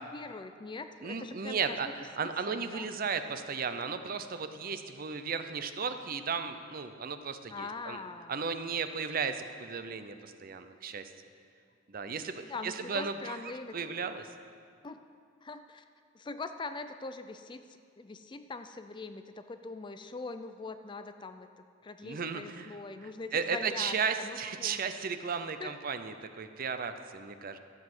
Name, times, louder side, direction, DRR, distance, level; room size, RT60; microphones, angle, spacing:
voice 1, 0.0-1.9 2.2-2.9 7.5-8.3 12.5-13.8 14.8-15.0 15.4-15.8 16.1-24.8 25.6-25.7, left 3 dB, 25° left, 9 dB, 0.4 m, -42 dB
voice 2, 1.0-8.0 8.3-11.1 11.9-14.3 22.0-22.7 23.0-27.6, right 5 dB, 45° right, 9 dB, 0.6 m, -35 dB
13.0 x 7.5 x 6.1 m, 2.2 s
head